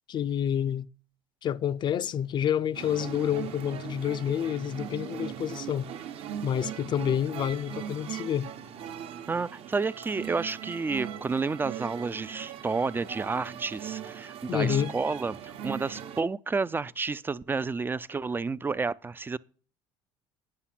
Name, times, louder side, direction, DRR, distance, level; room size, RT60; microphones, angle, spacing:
voice 1, 0.1-0.9 1.4-5.9 6.4-8.5 14.5-14.9, left 9 dB, 40° left, 0.5 m, -28 dB
sound 1, 2.7-16.2, right 9 dB, 55° right, 1.0 m, -39 dB
voice 2, 9.3-19.4, right 4 dB, 20° right, 0.4 m, -30 dB
9.8 x 5.6 x 5.8 m
supercardioid pair, 80°, 12 cm